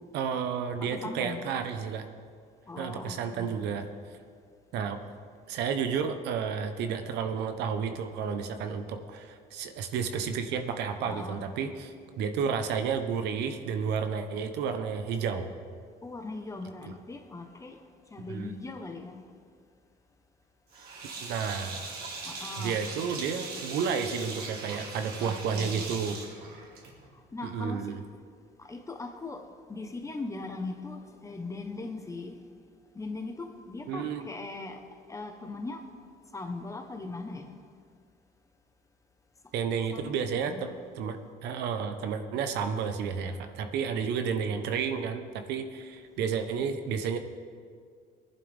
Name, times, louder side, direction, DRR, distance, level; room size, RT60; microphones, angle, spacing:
voice 1, 0.1-2.0 2.8-3.9 4.7-5.0 5.5-15.5 16.9-17.0 18.3-18.5 21.2-21.8 22.6-26.2 27.4-28.0 33.9-34.3 39.5-47.2, right 6 dB, 85° right, 1.0 m, -31 dB
voice 2, 0.8-1.5 2.7-3.7 11.1-11.4 16.0-17.8 18.1-19.2 22.2-22.8 25.1-26.1 27.3-27.9 28.6-32.4 32.9-34.8 35.1-35.8 36.3-37.5 39.9-40.6, left 3 dB, 20° left, 1.2 m, -40 dB
Sink (filling or washing), 20.7-27.1, right 3 dB, 70° right, 2.5 m, -40 dB
19.5 x 11.0 x 3.6 m
cardioid pair, 110°, 17 cm